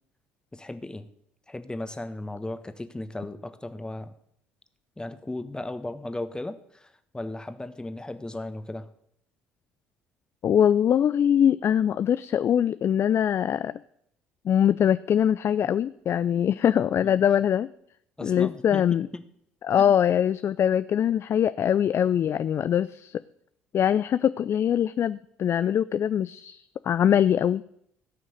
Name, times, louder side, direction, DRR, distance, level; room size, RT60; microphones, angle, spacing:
voice 1, 0.5-1.1 1.5-4.1 5.0-8.9 17.0-17.1 18.2-19.2 19.8-19.9, left 2 dB, 15° left, 10 dB, 1.4 m, -36 dB
voice 2, 10.4-13.7 14.5-17.7 18.2-19.1 19.6-23.2 23.7-27.6, left 9 dB, 45° left, 15 dB, 0.4 m, -23 dB
16.5 x 6.3 x 8.0 m, 0.72 s
hypercardioid pair, 55°, 6 cm